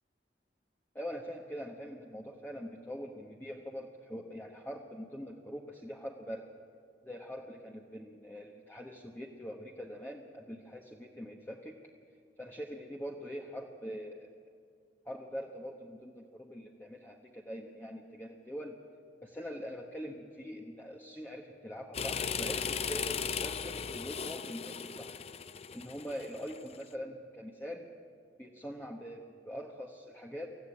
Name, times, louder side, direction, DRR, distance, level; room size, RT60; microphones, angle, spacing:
voice 1, 0.9-6.5 7.0-11.7 12.4-14.4 15.0-18.8 19.2-25.2 25.7-27.9 28.4-30.5, equal, 10° left, 0 dB, 1.2 m, -43 dB
sound 1, 21.9-26.8, left 6 dB, 35° left, 0.5 m, -37 dB
25.0 x 15.0 x 9.8 m, 2.2 s
head